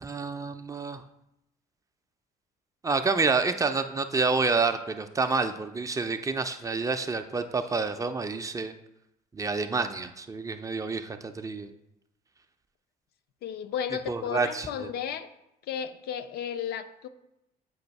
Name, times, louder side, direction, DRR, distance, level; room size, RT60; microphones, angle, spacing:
voice 1, 0.0-1.0 2.8-8.7 9.3-11.7 14.1-14.9, right 4 dB, 20° right, 8 dB, 0.4 m, -28 dB
voice 2, 13.4-15.3 15.7-17.1, left 8 dB, 70° left, 10 dB, 0.5 m, -33 dB
7.8 x 2.6 x 5.2 m, 0.85 s
cardioid pair, 110°, 17 cm